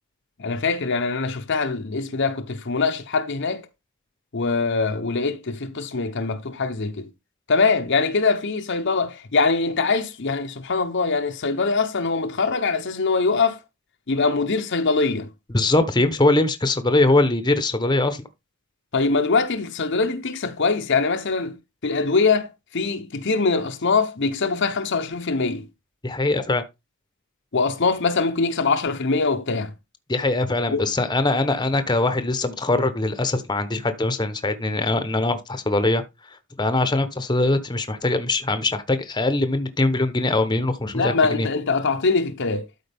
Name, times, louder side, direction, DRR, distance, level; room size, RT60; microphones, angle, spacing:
voice 1, 0.4-3.6 4.3-7.1 7.5-13.6 14.1-15.3 18.9-21.6 21.8-22.5 22.7-25.7 27.5-29.7 30.7-30.9 40.9-42.7, left 4 dB, 55° left, 0.8 m, -23 dB
voice 2, 15.5-18.2 26.0-26.6 30.1-36.0 36.6-41.5, left 2 dB, 20° left, 0.9 m, -22 dB
12.5 x 4.7 x 3.5 m
head